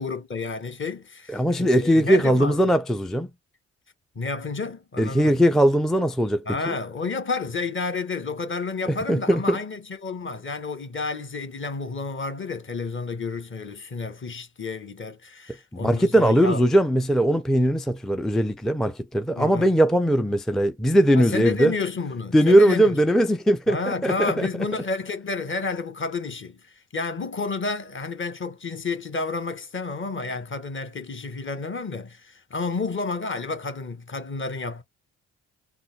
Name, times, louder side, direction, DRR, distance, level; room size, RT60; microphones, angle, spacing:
voice 1, 0.0-2.6 4.1-5.4 6.4-16.6 19.3-19.7 21.1-23.0 23.7-34.8, left 4 dB, 35° left, 1.2 m, -30 dB
voice 2, 1.3-3.3 5.0-6.7 8.9-9.6 15.7-21.7 22.3-24.5, equal, ahead, 0.4 m, -20 dB
3.7 x 2.3 x 2.8 m
hypercardioid pair, 50°, 34 cm